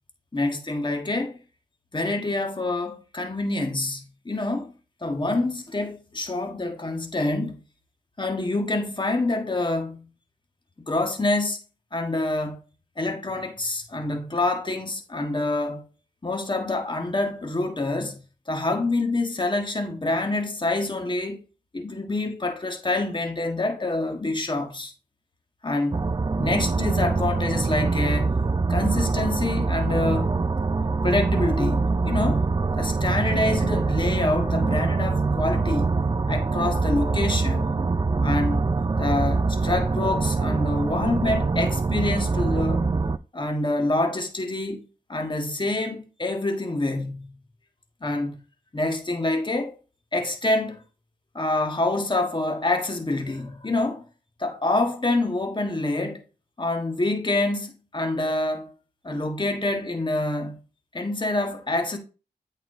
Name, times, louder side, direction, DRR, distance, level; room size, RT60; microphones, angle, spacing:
voice 1, 0.3-1.3 1.9-4.7 5.0-7.6 8.2-10.0 10.9-11.6 11.9-12.6 13.0-15.8 16.2-18.2 18.5-21.4 21.7-24.9 25.6-26.0 26.4-28.3 28.7-30.4 31.0-32.5 32.8-35.9 36.3-37.8 38.2-38.7 39.0-42.9 43.3-44.8 45.1-47.3 48.0-48.4 48.7-49.7 50.1-50.8 51.3-54.1 54.4-56.2 56.6-58.7 59.0-60.6 60.9-62.0, left 2 dB, 30° left, 1.6 m, -26 dB
sound 1, 25.9-43.2, right 4 dB, 25° right, 0.4 m, -24 dB
8.3 x 4.5 x 3.8 m
cardioid pair, 50°, 16 cm